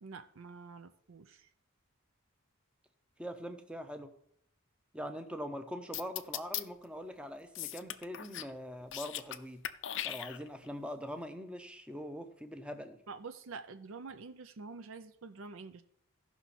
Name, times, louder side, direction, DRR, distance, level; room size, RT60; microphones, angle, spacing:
voice 1, 0.0-1.5 13.1-15.8, right 4 dB, 70° right, 9 dB, 0.5 m, -47 dB
voice 2, 3.2-4.1 4.9-9.6 10.0-13.0, equal, 5° right, 7 dB, 0.7 m, -42 dB
sound 1, 5.9-6.6 7.6-8.5 8.8-9.4 9.6-10.7, left 12 dB, 55° left, 0.5 m, -38 dB
15.5 x 5.8 x 4.2 m, 0.72 s
head